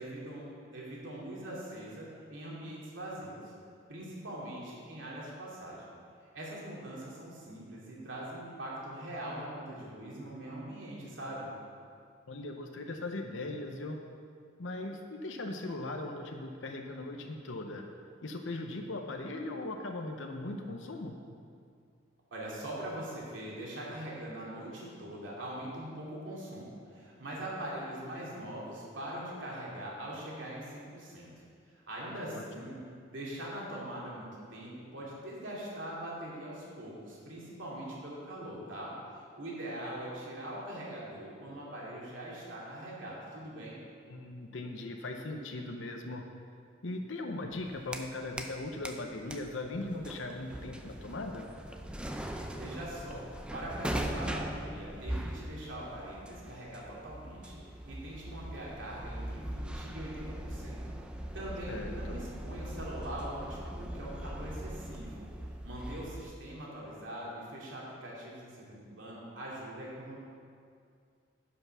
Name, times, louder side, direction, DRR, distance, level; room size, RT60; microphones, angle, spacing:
voice 1, 0.0-3.5 3.9-5.9 6.3-11.5 22.3-31.3 31.7-32.8 33.1-38.9 39.4-43.8 52.6-53.3 53.5-65.3 65.6-70.2, right 1 dB, 70° right, -5 dB, 2.6 m, -42 dB
voice 2, 12.3-14.0 14.6-17.9 18.2-21.2 32.0-32.4 44.1-46.2 46.8-51.5 61.7-62.2, left 2 dB, 70° left, 3 dB, 0.8 m, -39 dB
sound 1, 47.5-48.6 48.8-66.3, right 1 dB, 5° right, 0.5 m, -40 dB
10.0 x 5.7 x 6.1 m, 2.3 s
head